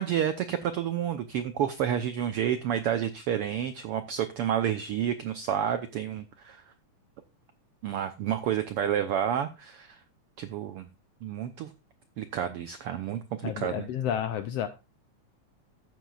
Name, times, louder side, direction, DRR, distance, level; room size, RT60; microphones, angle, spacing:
voice 1, 0.0-6.6 7.8-10.0 10.4-10.9 11.2-11.7 12.2-13.9, right 9 dB, 85° right, 9 dB, 1.3 m, -30 dB
voice 2, 13.4-14.7, left 9 dB, 80° left, 10 dB, 1.4 m, -31 dB
13.5 x 9.3 x 2.4 m, 0.28 s
omnidirectional pair, 3.5 m